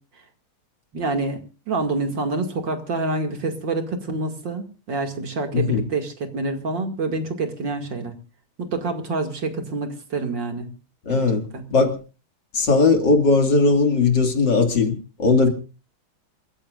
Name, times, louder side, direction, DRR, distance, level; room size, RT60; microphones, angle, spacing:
voice 1, 0.9-1.4 1.7-8.1 8.6-10.7 11.1-11.3 11.5-11.6, right 3 dB, 55° right, 3.0 m, -27 dB
voice 2, 5.5-5.9 11.1-11.4 11.7-12.0 12.5-15.5, left 3 dB, 55° left, 3.1 m, -18 dB
27.0 x 15.0 x 2.5 m
omnidirectional pair, 2.3 m